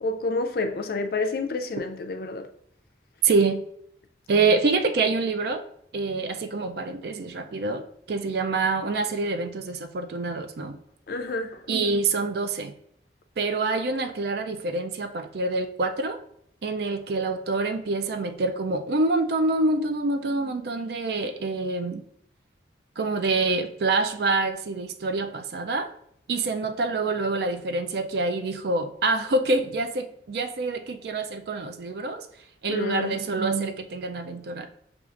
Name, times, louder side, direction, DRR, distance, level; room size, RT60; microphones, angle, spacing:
voice 1, 0.0-2.5 11.1-11.6 32.7-33.2, left 3 dB, 55° left, 0.4 m, -29 dB
voice 2, 3.2-3.6 4.3-5.7 5.9-10.8 11.7-12.7 13.4-16.2 16.6-22.0 23.0-25.9 26.3-32.3 32.6-34.7, right 3 dB, 60° right, 0.4 m, -26 dB
6.9 x 2.4 x 2.5 m
head